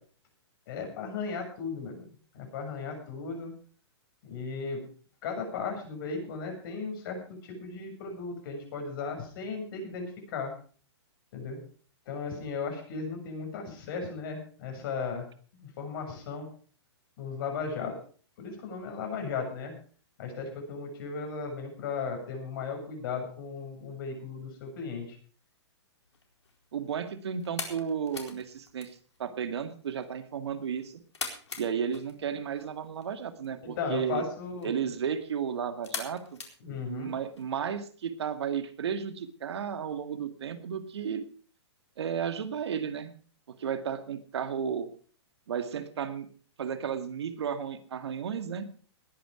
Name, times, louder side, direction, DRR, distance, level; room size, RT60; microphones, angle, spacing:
voice 1, 0.7-3.5 4.2-4.8 5.2-10.5 11.3-11.6 12.1-15.3 15.6-16.5 17.2-17.9 18.4-19.7 20.2-25.2 33.6-34.7 36.6-37.1, left 5 dB, 50° left, 3 dB, 7.3 m, -36 dB
sound 1, 26.0-37.4, left 5 dB, 80° left, 4.2 m, -45 dB
voice 2, 26.7-28.9 29.2-31.0 31.6-34.2 34.6-36.4 36.9-41.3 42.0-43.1 43.6-44.9 45.5-46.3 46.6-48.7, right 7 dB, 70° right, 9 dB, 2.1 m, -33 dB
20.0 x 9.5 x 5.0 m, 0.43 s
hypercardioid pair, 130°, 14 cm